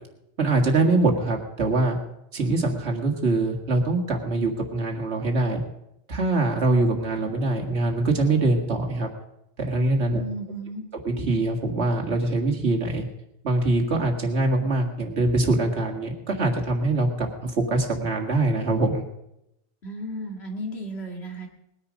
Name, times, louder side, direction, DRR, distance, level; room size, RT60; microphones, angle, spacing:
voice 1, 0.4-2.0 2.3-5.6 6.1-9.1 9.6-10.2 11.1-13.0 13.4-19.0, right 2 dB, 70° right, 1 dB, 2.1 m, -23 dB
voice 2, 10.1-10.8 19.8-21.5, right 1 dB, 65° left, 2 dB, 2.3 m, -34 dB
20.0 x 10.0 x 5.2 m, 0.83 s
omnidirectional pair, 1.2 m